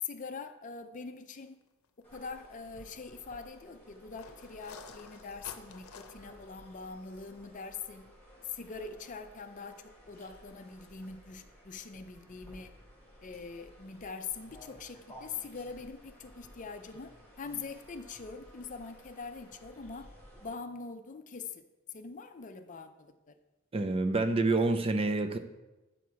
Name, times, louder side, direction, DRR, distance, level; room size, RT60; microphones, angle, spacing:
voice 1, 0.0-1.6 2.0-8.1 8.4-12.7 13.2-17.1 17.4-20.1 20.4-21.6 21.9-23.4, left 5 dB, 35° left, 9 dB, 0.5 m, -43 dB
sound 1, 1.8-2.0 2.4-2.5 4.1-6.4, left 5 dB, 85° left, 0.7 m, -50 dB
sound 2, 2.0-20.4, equal, 10° left, 3.2 m, -55 dB
voice 2, 23.7-25.4, right 2 dB, 25° right, 7 dB, 0.5 m, -27 dB
8.4 x 6.1 x 4.7 m, 1.1 s
head